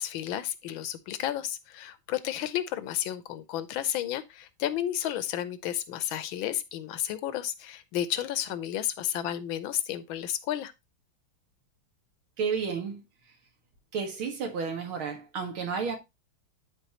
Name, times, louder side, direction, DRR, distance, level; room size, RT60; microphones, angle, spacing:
voice 1, 0.0-10.7, left 11 dB, 80° left, 1.5 m, -32 dB
voice 2, 12.4-13.0 13.9-16.0, right 5 dB, 85° right, 2.6 m, -31 dB
12.0 x 4.1 x 2.9 m
omnidirectional pair, 2.2 m